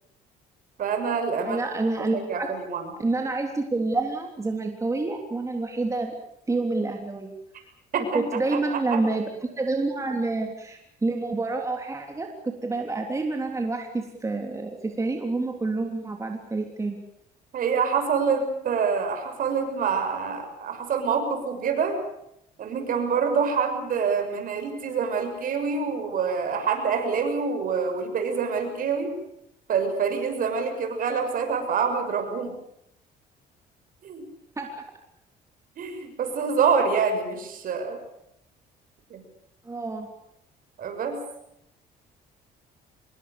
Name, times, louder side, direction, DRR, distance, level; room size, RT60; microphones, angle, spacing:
voice 1, 0.8-1.6 2.1-2.9 7.9-8.3 8.5-9.0 17.5-22.0 22.6-29.2 29.7-32.6 34.0-34.2 35.8-38.0 39.1-39.2 40.8-41.2, right 6 dB, 55° right, 6 dB, 6.5 m, -26 dB
voice 2, 1.4-2.5 3.0-6.1 6.5-7.3 8.1-9.3 9.6-17.0 34.6-34.8 39.7-40.1, right 3 dB, 20° right, 3 dB, 3.4 m, -28 dB
26.0 x 22.0 x 6.8 m, 0.77 s
cardioid pair, 110°, 17 cm